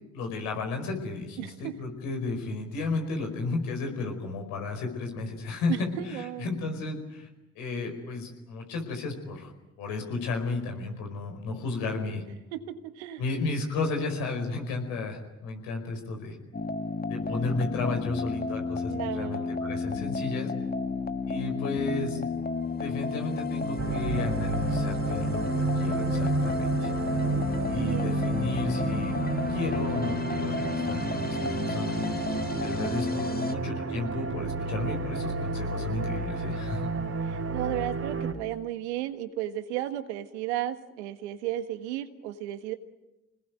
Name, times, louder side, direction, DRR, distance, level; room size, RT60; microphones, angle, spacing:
voice 1, 0.1-7.3 7.5-9.5 9.8-12.2 13.2-16.4 17.1-20.5 21.3-22.2 22.8-26.9 27.7-29.1 29.5-31.9 32.6-36.9, left 3 dB, 75° left, 4 dB, 5.0 m, -33 dB
voice 2, 1.4-1.7 5.7-6.5 12.5-13.2 18.8-19.5 25.5-25.6 27.8-28.2 33.2-33.5 37.2-42.7, right 13 dB, 80° right, 10 dB, 1.5 m, -34 dB
sound 1, 16.5-33.5, left 4 dB, 25° left, 1.5 m, -32 dB
sound 2, 23.8-38.3, right 3 dB, 45° right, 3.1 m, -31 dB
27.0 x 20.0 x 9.4 m, 0.99 s
hypercardioid pair, 45°, 33 cm